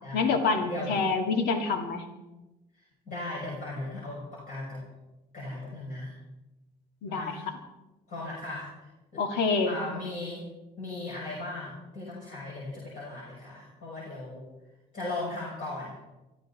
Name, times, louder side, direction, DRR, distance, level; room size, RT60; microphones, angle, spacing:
voice 1, 0.1-2.0 7.0-7.4 9.2-9.7, left 4 dB, 80° left, 4 dB, 2.1 m, -27 dB
voice 2, 0.7-1.1 3.1-4.9 5.3-6.2 7.1-7.5 8.1-9.2 9.7-10.4 10.8-14.4 14.9-16.0, left 2 dB, 50° left, -5 dB, 6.3 m, -37 dB
24.0 x 14.0 x 4.2 m, 1.0 s
cardioid pair, 110°, 17 cm